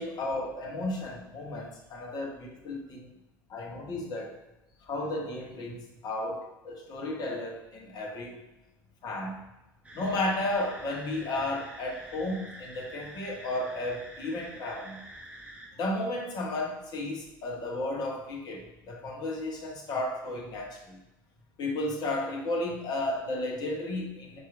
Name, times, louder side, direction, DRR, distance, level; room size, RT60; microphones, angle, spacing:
voice 1, 0.0-3.2 3.5-4.4 4.8-6.4 6.7-8.4 9.0-9.4 9.9-15.0 15.7-21.0 21.6-24.4, left 2 dB, 40° left, 0 dB, 0.7 m, -33 dB
sound 1, 9.8-15.7, right 1 dB, 10° right, 0.7 m, -47 dB
4.3 x 2.4 x 2.3 m, 0.97 s
figure-of-eight pair, 70°, 11 cm